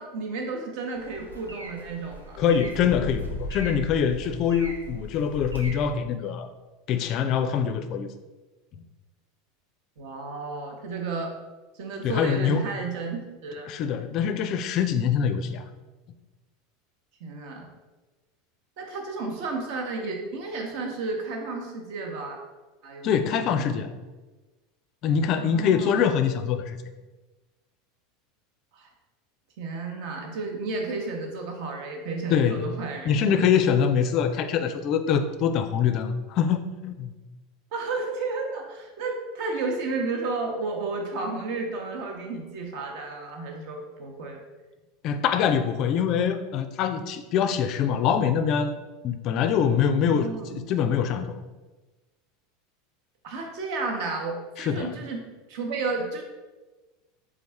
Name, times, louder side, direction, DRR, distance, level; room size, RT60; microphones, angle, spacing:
voice 1, 0.0-2.4 10.0-11.3 11.7-13.7 17.2-17.7 18.8-22.4 22.8-23.8 25.4-26.0 28.7-28.9 29.6-33.4 37.7-44.4 50.1-50.6 53.2-56.2, right 3 dB, 50° right, 2 dB, 0.8 m, -32 dB
sound 1, 0.9-5.9, equal, 85° right, 0.6 m, -37 dB
voice 2, 2.4-6.5 6.9-8.1 12.0-12.7 13.7-15.6 23.0-23.9 25.0-26.8 32.3-32.6 33.0-37.1 45.0-48.7 49.0-50.3 50.5-51.4 54.6-54.9, left 7 dB, 45° left, 10 dB, 0.4 m, -24 dB
4.0 x 3.6 x 3.4 m, 1.2 s
figure-of-eight pair, 80°, 0 cm